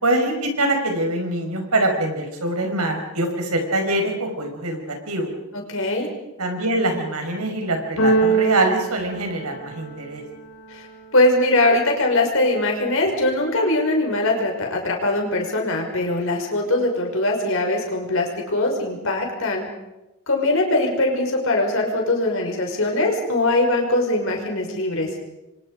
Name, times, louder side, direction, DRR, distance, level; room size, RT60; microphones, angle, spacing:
voice 1, 0.0-5.3 6.4-10.2, right 1 dB, 85° right, 4 dB, 5.5 m, -24 dB
voice 2, 5.5-6.1 10.7-10.9 11.1-19.6 20.3-25.1, left 2 dB, 60° left, 2 dB, 5.8 m, -21 dB
Keyboard (musical), 8.0-10.1, right 4 dB, 80° left, 5.8 m, -22 dB
28.5 x 25.0 x 5.1 m, 0.98 s
head